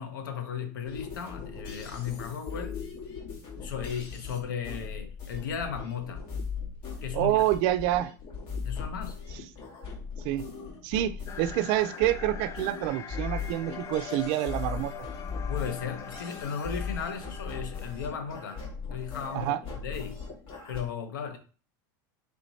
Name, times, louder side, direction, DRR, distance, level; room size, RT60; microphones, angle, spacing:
voice 1, 0.0-2.8 3.6-6.3 7.0-7.4 8.6-9.2 15.4-20.2 20.7-21.4, left 7 dB, 90° left, 0.8 m, -36 dB
sound 1, 0.8-20.8, left 5 dB, 65° left, 1.7 m, -39 dB
voice 2, 7.1-8.1 10.2-10.5 10.8-14.9 19.3-19.6, right 14 dB, 60° right, 0.4 m, -27 dB
sound 2, 11.3-18.4, left 7 dB, 30° left, 0.4 m, -43 dB
3.4 x 3.1 x 4.0 m
supercardioid pair, 105°, 10 cm